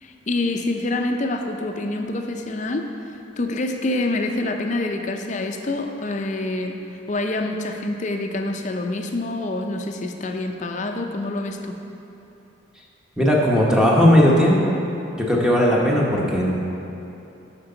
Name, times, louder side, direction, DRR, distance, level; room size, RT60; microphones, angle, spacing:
voice 1, 0.0-6.8 7.1-11.8, left 2 dB, 35° left, 4 dB, 0.5 m, -26 dB
voice 2, 13.2-14.7 15.1-16.5, equal, 5° right, -4 dB, 0.8 m, -17 dB
11.0 x 5.2 x 3.9 m, 2.9 s
head